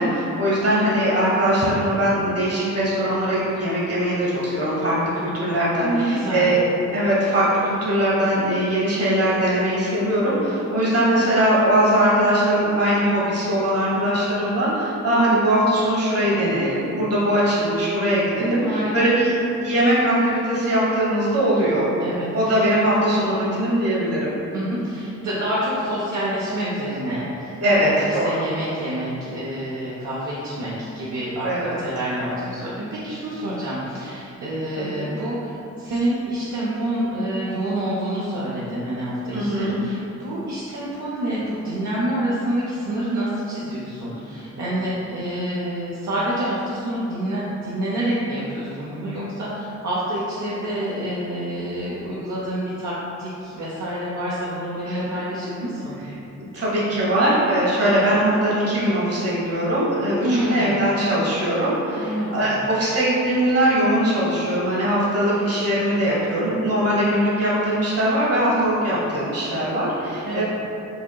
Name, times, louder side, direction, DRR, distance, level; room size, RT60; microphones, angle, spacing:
voice 1, 0.0-6.6 6.9-21.9 22.3-24.4 27.6-28.5 31.4-31.8 34.7-35.1 39.3-39.8 54.9-55.2 56.5-70.4, right 1 dB, 50° right, -7 dB, 1.3 m, -21 dB
voice 2, 5.8-6.5 10.8-11.0 18.4-19.1 22.0-22.6 24.5-56.0 60.2-60.7 62.0-62.6 70.2-70.4, right 1 dB, 70° right, -8 dB, 0.7 m, -27 dB
4.9 x 2.9 x 2.3 m, 2.8 s
cardioid pair, 95°, 30 cm